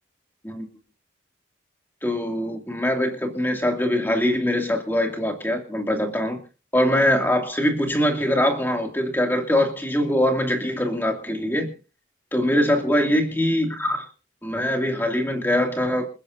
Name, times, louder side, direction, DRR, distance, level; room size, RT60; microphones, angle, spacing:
voice 1, 2.0-6.4 6.7-11.7 12.3-14.1 14.4-16.1, left 1 dB, 10° left, 3 dB, 2.5 m, -23 dB
27.5 x 10.0 x 2.7 m, 0.35 s
head